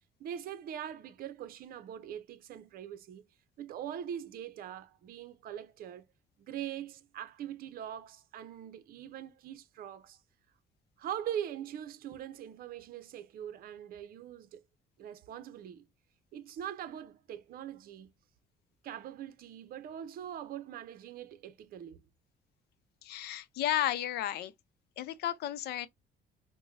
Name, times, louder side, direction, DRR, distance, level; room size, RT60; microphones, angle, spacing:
voice 1, 0.2-3.2 3.6-6.0 6.4-10.2 11.0-14.6 15.0-15.8 16.3-18.1 18.8-22.0, right 10 dB, 60° right, 0.7 m, -42 dB
voice 2, 23.0-24.5 25.0-25.9, left 12 dB, 75° left, 0.6 m, -33 dB
4.7 x 2.2 x 2.5 m
cardioid pair, 110°, 17 cm